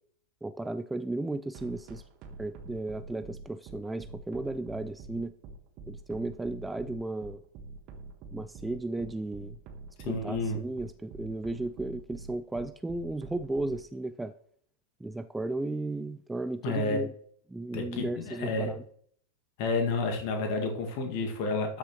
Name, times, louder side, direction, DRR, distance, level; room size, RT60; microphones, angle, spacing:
voice 1, 0.4-2.0 2.4-5.3 5.9-7.4 8.3-9.6 10.0-14.3 15.0-17.1 17.5-18.8, right 2 dB, 5° right, 11 dB, 0.3 m, -35 dB
sound 1, 1.5-13.8, right 3 dB, 40° right, 1.4 m, -45 dB
voice 2, 10.0-10.6 16.6-17.0 17.7-18.7 19.6-21.8, left 3 dB, 45° left, 3 dB, 1.9 m, -30 dB
12.5 x 6.6 x 3.0 m, 0.62 s
figure-of-eight pair, 90°, 0 cm